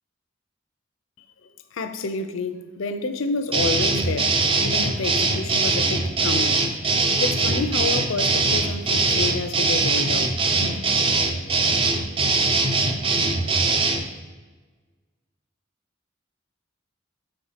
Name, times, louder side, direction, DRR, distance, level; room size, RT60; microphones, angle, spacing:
voice 1, 1.4-6.7 7.2-10.3 10.6-10.7, left 4 dB, 80° left, 0.5 m, -29 dB
sound 1, 3.5-14.0, right 3 dB, 25° right, 0.6 m, -21 dB
5.5 x 4.2 x 5.7 m
head